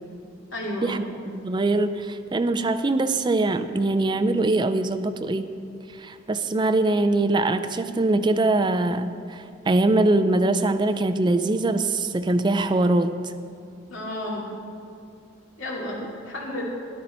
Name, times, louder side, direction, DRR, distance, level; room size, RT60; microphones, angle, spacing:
voice 1, 0.5-1.0 13.9-14.5 15.6-16.6, left 1 dB, 85° left, -3 dB, 2.5 m, -32 dB
voice 2, 1.3-5.5 6.0-13.3, right 2 dB, 25° right, 10 dB, 0.4 m, -22 dB
13.0 x 11.5 x 4.3 m, 2.5 s
head